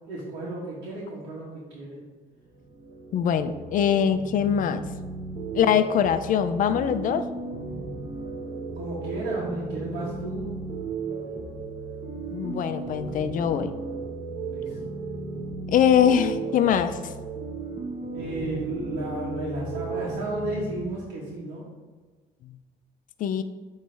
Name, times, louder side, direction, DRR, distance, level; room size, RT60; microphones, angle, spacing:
voice 1, 0.1-2.0 8.8-10.5 14.5-14.7 18.1-21.6, right 1 dB, 85° right, -7 dB, 1.5 m, -33 dB
sound 1, 2.4-20.8, right 4 dB, 30° right, 1.4 m, -35 dB
voice 2, 3.1-4.8 5.5-7.3 12.3-13.7 15.7-17.1 22.4-22.6 23.2-23.4, left 8 dB, 55° left, 11 dB, 0.4 m, -23 dB
8.9 x 3.3 x 3.4 m, 1.4 s
cardioid pair, 110°, 17 cm